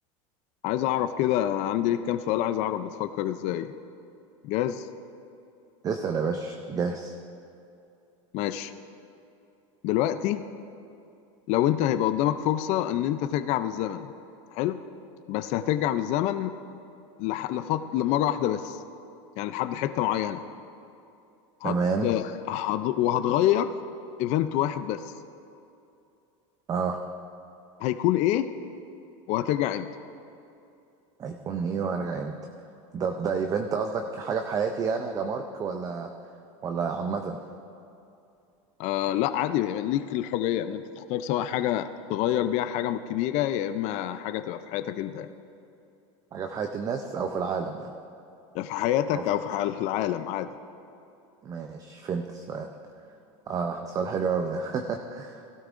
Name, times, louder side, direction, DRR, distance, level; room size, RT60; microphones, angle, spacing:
voice 1, 0.6-3.7 4.4-4.9 8.3-8.7 9.8-10.4 11.5-14.1 14.5-14.8 15.3-16.5 17.2-18.8 19.4-20.4 21.6-23.7 24.2-25.1 27.8-28.5 29.3-29.9 38.8-45.3 48.5-50.5, left 12 dB, 45° left, 10 dB, 0.4 m, -27 dB
voice 2, 5.8-7.2 21.6-22.1 26.7-27.0 31.2-32.3 32.9-36.1 36.6-37.4 46.3-47.9 49.1-49.4 51.4-52.7 53.5-55.4, right 5 dB, 20° right, 5 dB, 0.5 m, -29 dB
16.5 x 12.5 x 2.5 m, 2.7 s
supercardioid pair, 150°, 17 cm